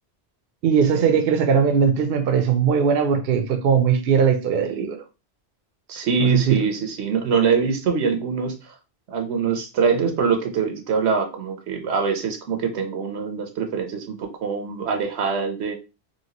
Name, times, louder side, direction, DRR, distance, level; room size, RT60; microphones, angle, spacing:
voice 1, 0.6-5.0 6.2-6.6, right 7 dB, 70° right, 0.8 m, -19 dB
voice 2, 5.9-8.7 9.1-15.8, right 5 dB, 90° right, 1.0 m, -24 dB
2.9 x 2.8 x 2.8 m
omnidirectional pair, 1.1 m